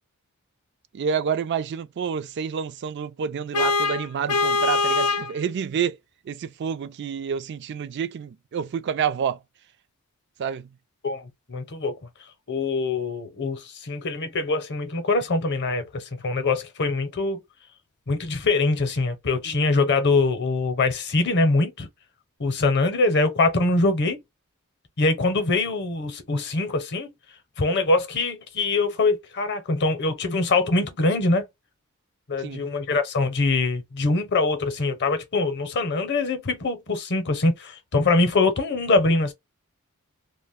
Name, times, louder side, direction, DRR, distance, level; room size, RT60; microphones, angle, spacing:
voice 1, 0.9-6.0 6.2-9.4 10.4-10.7 19.5-19.6 32.4-32.7, right 7 dB, 50° right, 0.3 m, -28 dB
Vehicle horn car horn honking, 3.5-5.3, left 4 dB, 90° left, 0.6 m, -22 dB
voice 2, 11.0-11.9 12.5-17.4 18.1-21.9 22.4-24.2 25.0-27.1 27.6-31.5 32.3-39.3, left 3 dB, 50° left, 0.7 m, -23 dB
2.3 x 2.1 x 3.5 m
head